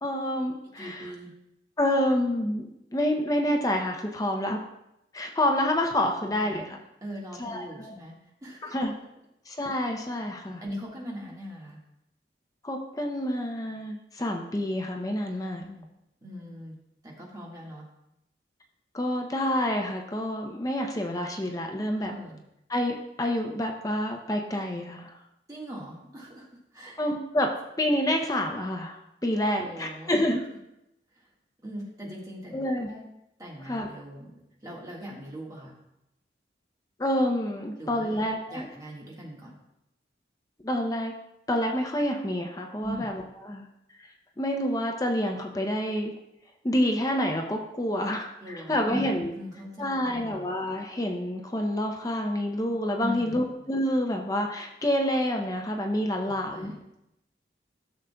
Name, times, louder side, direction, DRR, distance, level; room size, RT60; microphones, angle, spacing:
voice 1, 0.0-1.1 1.8-4.6 5.1-6.7 7.4-8.0 8.6-8.9 9.5-10.6 12.6-15.6 18.9-22.1 22.7-25.1 27.0-30.4 32.5-32.9 33.7-33.9 37.0-38.7 40.6-41.1 41.5-43.7 44.4-46.1 46.6-49.3 49.8-56.7, left 1 dB, 20° left, 2 dB, 0.6 m, -28 dB
voice 2, 0.7-1.3 6.2-8.1 8.4-8.8 10.6-11.8 15.6-15.8 16.2-16.7 17.0-17.9 22.0-22.4 25.5-26.5 26.7-27.0 29.5-30.2 31.1-31.3 31.6-33.1 33.4-34.3 34.6-35.7 37.8-38.2 38.5-39.5 42.8-43.1 48.4-50.5 53.0-53.5 56.1-56.8, equal, 20° right, -4 dB, 1.6 m, -40 dB
13.5 x 6.4 x 2.3 m, 0.86 s
head